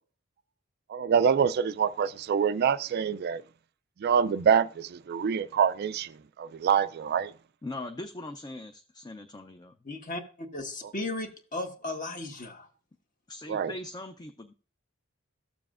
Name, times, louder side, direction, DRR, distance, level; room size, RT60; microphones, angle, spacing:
voice 1, 0.9-3.4 4.0-6.1 6.4-7.3 13.5-13.7, right 7 dB, 50° right, 0.3 m, -25 dB
voice 2, 7.6-9.7 13.3-14.5, left 2 dB, 20° left, 0.4 m, -40 dB
voice 3, 9.8-10.2 10.5-12.7, left 2 dB, 40° left, 1.3 m, -35 dB
14.5 x 7.0 x 2.4 m
head